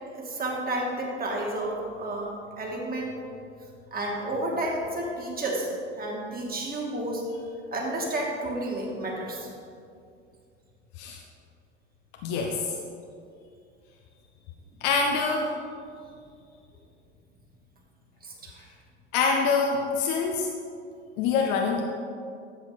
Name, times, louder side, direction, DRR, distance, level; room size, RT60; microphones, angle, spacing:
voice 1, 0.1-3.1 3.9-5.7 6.0-7.2 7.7-9.5 18.2-18.6, right 1 dB, 25° right, -2 dB, 2.7 m, -31 dB
voice 2, 12.2-12.8 14.8-15.5 19.1-20.5 21.2-21.8, left 5 dB, 55° left, 1 dB, 1.1 m, -25 dB
13.0 x 8.0 x 4.2 m, 2.4 s
figure-of-eight pair, 75°, 35 cm